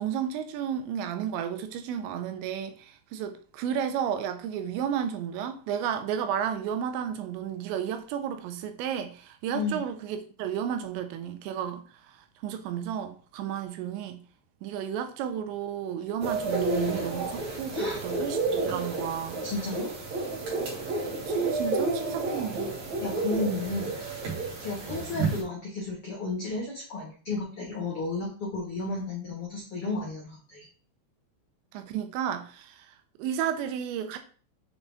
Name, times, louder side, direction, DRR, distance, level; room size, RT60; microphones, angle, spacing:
voice 1, 0.0-11.8 12.4-14.2 14.6-19.4 21.1-22.8 31.7-34.2, right 9 dB, 85° right, 3.0 m, -32 dB
sound 1, 16.2-25.4, right 3 dB, 50° right, 2.3 m, -31 dB
voice 2, 19.4-19.9 23.0-23.9 24.6-30.7, left 3 dB, 90° left, 1.2 m, -33 dB
7.0 x 4.1 x 3.5 m
omnidirectional pair, 5.1 m